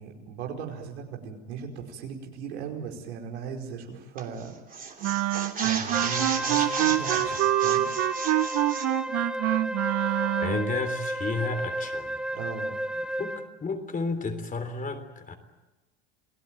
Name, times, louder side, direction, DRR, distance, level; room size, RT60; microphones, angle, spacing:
voice 1, 0.0-4.5 5.6-7.9 12.3-12.8, right 6 dB, 80° right, 1 dB, 5.1 m, -38 dB
sound 1, 4.2-4.4 4.7-8.9, right 5 dB, 25° right, 3.1 m, -33 dB
Wind instrument woodwind instrument, 5.0-10.8, right 15 dB, 50° right, 1.0 m, -26 dB
Wind instrument woodwind instrument 2, 5.9-13.6, right 1 dB, ahead, 1.4 m, -32 dB
voice 2, 10.2-12.2 13.2-15.4, left 3 dB, 25° left, 8 dB, 3.5 m, -32 dB
28.5 x 18.0 x 9.1 m, 1.1 s
hypercardioid pair, 90°, 33 cm